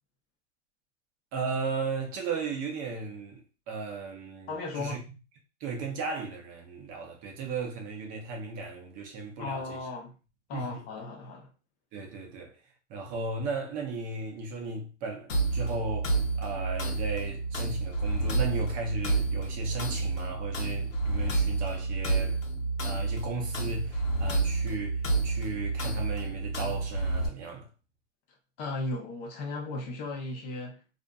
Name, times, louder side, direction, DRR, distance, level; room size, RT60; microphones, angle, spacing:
voice 1, 1.3-5.0 5.6-9.8 10.5-10.8 11.9-12.6 12.9-22.4 22.8-27.7, right 4 dB, 20° right, 0.5 m, -36 dB
voice 2, 4.5-5.0 9.4-10.1 10.5-11.5 28.6-30.8, left 3 dB, 25° left, 0.6 m, -36 dB
sound 1, 15.3-27.3, right 3 dB, 90° left, 0.9 m, -29 dB
2.5 x 2.5 x 2.2 m
hypercardioid pair, 130°, 38 cm